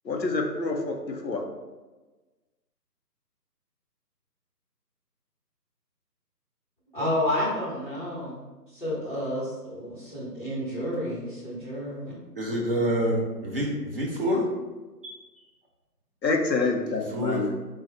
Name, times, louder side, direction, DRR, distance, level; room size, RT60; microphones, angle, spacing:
voice 1, 0.0-1.4 16.2-17.5, left 3 dB, 85° left, 2 dB, 0.9 m, -27 dB
voice 2, 6.9-12.1, left 1 dB, 30° left, -9 dB, 1.1 m, -30 dB
voice 3, 12.4-14.4 15.0-15.2 17.1-17.5, equal, 35° right, -3 dB, 0.7 m, -27 dB
4.2 x 2.4 x 3.9 m, 1.2 s
figure-of-eight pair, 165°, 49 cm